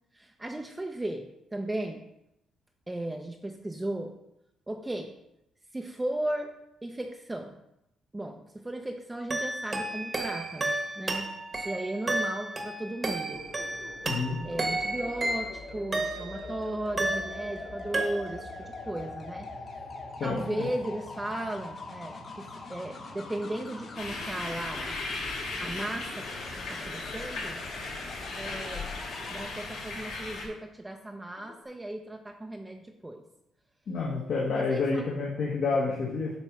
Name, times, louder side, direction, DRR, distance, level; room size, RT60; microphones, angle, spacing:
voice 1, 0.1-2.0 2.9-4.1 4.7-5.1 5.7-6.5 6.8-7.6 8.1-13.4 14.4-19.5 20.2-25.0 25.6-26.3 26.6-27.6 28.3-28.8 29.3-33.2 34.5-35.1, right 1 dB, 15° right, 3 dB, 0.7 m, -36 dB
sound 1, 9.3-16.5 17.0-17.7 17.9-18.6, right 2 dB, 30° right, 1.2 m, -32 dB
sound 2, 13.3-29.4 31.4-31.6, left 3 dB, 45° left, 1.7 m, -43 dB
voice 2, 14.1-14.4 20.2-20.7 33.9-36.3, left 4 dB, 60° left, -5 dB, 1.5 m, -29 dB
sound 3, 24.0-30.5, left 3 dB, 80° left, 3.1 m, -37 dB
9.0 x 3.1 x 5.9 m, 0.84 s
cardioid pair, 90°, 0 cm